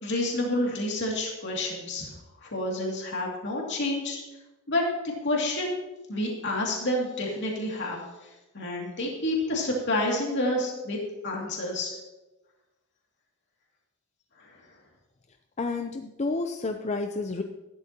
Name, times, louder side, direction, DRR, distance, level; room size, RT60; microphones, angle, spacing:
voice 1, 0.0-2.1 2.4-4.2 4.7-4.8 5.2-5.8 6.1-8.3 8.5-11.0 11.2-12.0 14.4-14.6, left 1 dB, 55° left, -1 dB, 2.4 m, -29 dB
voice 2, 15.6-17.4, left 3 dB, 30° left, 6 dB, 0.5 m, -30 dB
14.5 x 11.5 x 2.9 m, 1.0 s
head